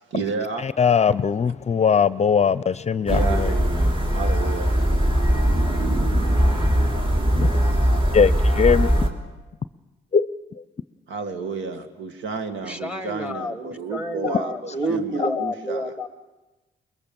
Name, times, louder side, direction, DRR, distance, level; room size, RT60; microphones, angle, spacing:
voice 1, 0.1-0.7 1.4-1.5 3.1-4.8 11.1-15.9, right 4 dB, 75° right, 7 dB, 2.1 m, -31 dB
voice 2, 0.6-3.5 7.3-7.5 8.1-8.9 10.1-10.3 15.2-15.3, left 6 dB, 35° left, 16 dB, 0.6 m, -20 dB
sound 1, 3.1-9.1, equal, 25° right, 3.4 m, -20 dB
voice 3, 12.6-16.1, equal, 5° right, 10 dB, 1.6 m, -29 dB
23.5 x 21.5 x 7.1 m, 1.1 s
cardioid pair, 90°, 20 cm